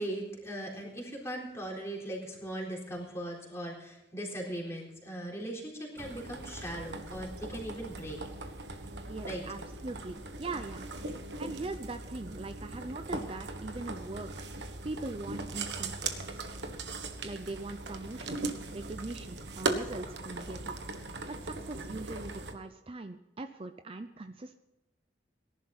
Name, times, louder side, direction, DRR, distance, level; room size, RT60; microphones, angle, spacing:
voice 1, 0.0-8.2 9.2-9.4, right 1 dB, 15° left, -2 dB, 3.9 m, -39 dB
sound 1, 6.0-22.5, right 3 dB, 70° right, 1.4 m, -39 dB
voice 2, 9.1-10.9 11.4-14.5 14.8-16.5 17.2-20.8 21.3-24.6, right 2 dB, 30° right, 8 dB, 0.6 m, -41 dB
18.0 x 11.5 x 4.1 m, 0.96 s
head